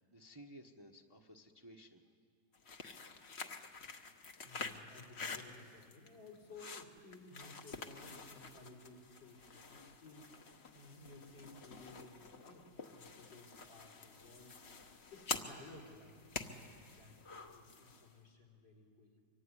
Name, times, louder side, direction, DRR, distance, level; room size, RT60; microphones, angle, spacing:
voice 1, 0.0-2.0 18.1-18.2, right 1 dB, 15° right, 2 dB, 1.1 m, -57 dB
sound 1, 2.5-18.1, left 4 dB, 40° left, 1.4 m, -48 dB
voice 2, 4.2-14.6 15.1-19.2, left 2 dB, 80° left, 2 dB, 5.6 m, -57 dB
24.5 x 24.5 x 9.9 m, 2.2 s
omnidirectional pair, 1.9 m